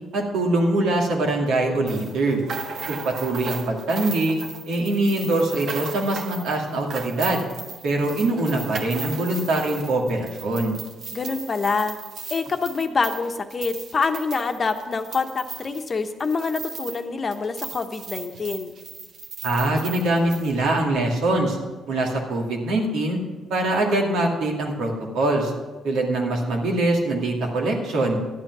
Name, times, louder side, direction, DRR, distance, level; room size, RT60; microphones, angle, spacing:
voice 1, 0.1-2.4 2.9-4.4 4.7-7.5 7.8-10.7 19.4-21.6 21.9-23.2 23.5-25.5 25.8-28.2, right 2 dB, 85° right, 0 dB, 2.4 m, -23 dB
sound 1, 1.9-17.1 17.3-20.5, right 4 dB, 65° right, 1.4 m, -37 dB
voice 2, 11.1-12.0 12.3-18.7, left 4 dB, 40° left, 6 dB, 1.0 m, -26 dB
12.0 x 9.0 x 6.1 m, 1.3 s
cardioid pair, 90°, 0 cm